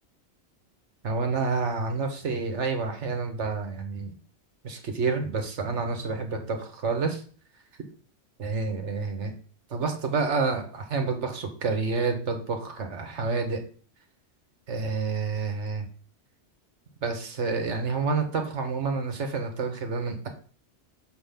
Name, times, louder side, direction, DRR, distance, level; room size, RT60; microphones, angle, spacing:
voice 1, 1.0-4.1 4.6-7.2 8.4-9.3 9.7-13.6 14.7-15.8 17.0-20.3, right 4 dB, 85° right, 5 dB, 1.5 m, -29 dB
6.7 x 5.7 x 3.5 m, 0.43 s
omnidirectional pair, 1.2 m